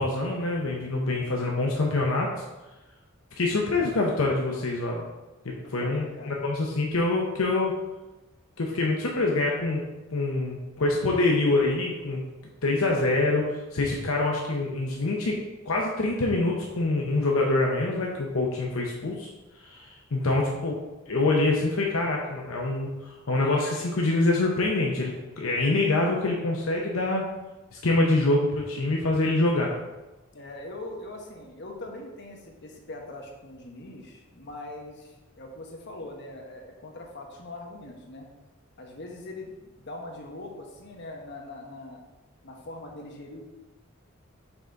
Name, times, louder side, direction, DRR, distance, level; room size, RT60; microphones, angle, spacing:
voice 1, 0.0-2.3 3.4-5.1 5.4-7.7 8.6-9.8 10.1-12.2 12.6-19.3 19.6-20.8 21.1-27.3 27.8-29.7, left 2 dB, 75° left, -1 dB, 0.7 m, -25 dB
voice 2, 5.6-6.4 30.3-38.3 38.8-42.0 42.4-43.4, left 2 dB, 55° left, 1 dB, 1.0 m, -41 dB
5.9 x 3.9 x 4.5 m, 1.1 s
head